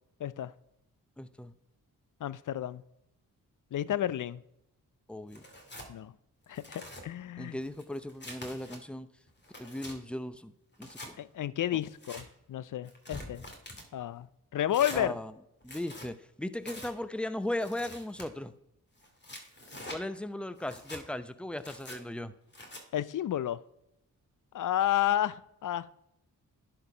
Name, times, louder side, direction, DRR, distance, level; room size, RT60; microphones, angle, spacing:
voice 1, 0.2-0.5 2.2-2.8 3.7-4.4 5.9-6.1 6.5-7.6 11.2-13.4 13.9-15.2 22.9-23.6 24.5-25.9, left 11 dB, 55° left, 0.5 m, -31 dB
voice 2, 1.2-1.5 5.1-5.4 7.4-9.1 9.6-10.5 10.8-11.2 11.7-11.8 14.9-15.3 15.6-18.5 19.9-22.3, left 1 dB, 5° left, 0.7 m, -37 dB
Tearing, 5.3-5.9 6.4-7.0 7.6-8.8 9.3-10.0 10.7-11.1 11.8-12.2 12.9-13.9 14.7-15.0 15.6-16.1 16.6-16.9 17.6-18.3 19.0-20.0 20.6-21.0 21.6-22.0 22.5-22.8, left 1 dB, 25° left, 2.3 m, -45 dB
11.0 x 4.7 x 4.9 m
supercardioid pair, 45°, 39 cm